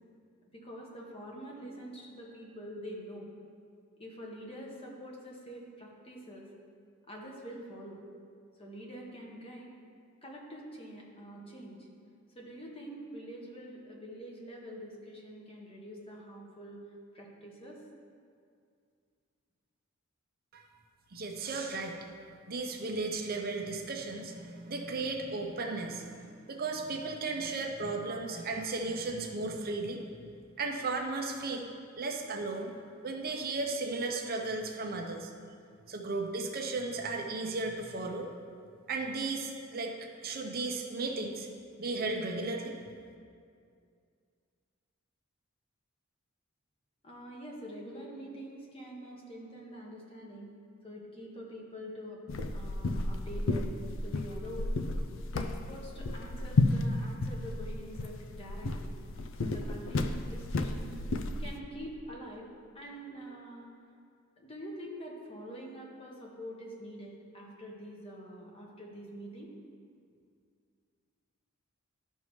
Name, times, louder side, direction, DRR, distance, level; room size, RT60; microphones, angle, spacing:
voice 1, 0.6-3.3 4.0-6.5 7.1-8.0 8.6-9.7 10.2-11.9 12.3-16.8 17.1-17.8 47.0-50.5 50.8-52.2 52.5-53.7 54.0-54.7 55.3-58.9 59.4-60.9 61.4-62.5 62.7-63.7 64.4-69.5, equal, 30° left, -2 dB, 1.2 m, -45 dB
voice 2, 21.1-22.0 22.5-30.0 30.6-31.7 32.0-32.7 33.0-35.3 35.9-38.3 38.9-39.9 40.2-41.5 41.8-42.8, right 3 dB, 50° right, 2 dB, 0.7 m, -35 dB
sound 1, 52.3-61.6, left 2 dB, 70° left, 0.4 m, -33 dB
12.5 x 5.4 x 3.1 m, 2.3 s
head